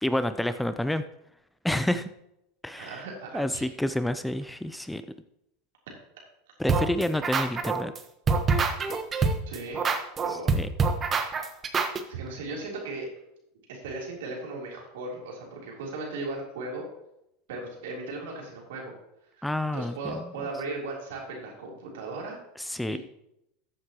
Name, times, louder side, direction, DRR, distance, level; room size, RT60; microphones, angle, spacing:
voice 1, 0.0-1.0 1.6-2.1 2.6-3.0 3.3-5.1 6.6-7.9 10.3-10.7 19.4-20.2 22.6-23.0, left 1 dB, 5° left, 12 dB, 0.5 m, -29 dB
voice 2, 2.8-3.7 9.5-9.8 10.2-10.6 12.1-13.1 13.7-16.9 17.5-18.9 19.4-19.5 19.7-22.4 22.9-23.0, right 3 dB, 80° right, -1 dB, 3.5 m, -37 dB
sound 1, 6.7-8.0 8.3-12.0, right 4 dB, 30° right, 1.2 m, -25 dB
14.5 x 8.0 x 3.0 m, 0.82 s
hypercardioid pair, 100°, 0 cm